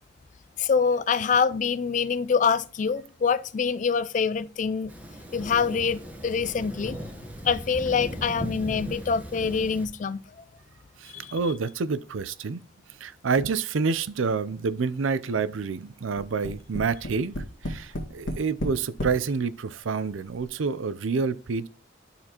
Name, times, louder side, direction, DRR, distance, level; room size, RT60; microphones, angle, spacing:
voice 1, 0.6-4.9 5.3-7.0 7.4-10.2 11.1-11.3, left 6 dB, 40° left, 0.3 m, -25 dB
Thunder, 4.9-9.9, equal, 10° right, 1.0 m, -37 dB
voice 2, 11.0-12.6 13.0-21.7, right 5 dB, 90° right, 0.5 m, -28 dB
Tap, 16.2-19.2 20.0-20.1 20.4-20.5, equal, 85° left, 1.7 m, -32 dB
12.0 x 4.2 x 2.9 m
head